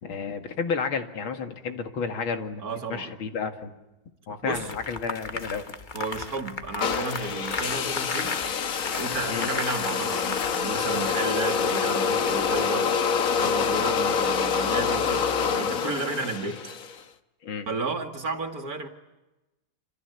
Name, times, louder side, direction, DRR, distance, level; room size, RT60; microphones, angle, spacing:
voice 1, 0.0-2.6 2.9-3.7 4.3-5.7 9.3-9.5 17.4-17.7, left 5 dB, 90° left, 7 dB, 2.8 m, -31 dB
voice 2, 2.6-3.1 4.4-4.7 5.9-8.4 9.0-12.9 13.3-16.7 17.7-18.9, right 3 dB, 50° right, 6 dB, 2.7 m, -33 dB
sound 1, 4.5-12.6, left 3 dB, 30° left, 1.2 m, -36 dB
sound 2, 6.8-17.0, left 6 dB, 50° left, 1.4 m, -26 dB
27.5 x 26.5 x 8.2 m, 1.0 s
omnidirectional pair, 2.2 m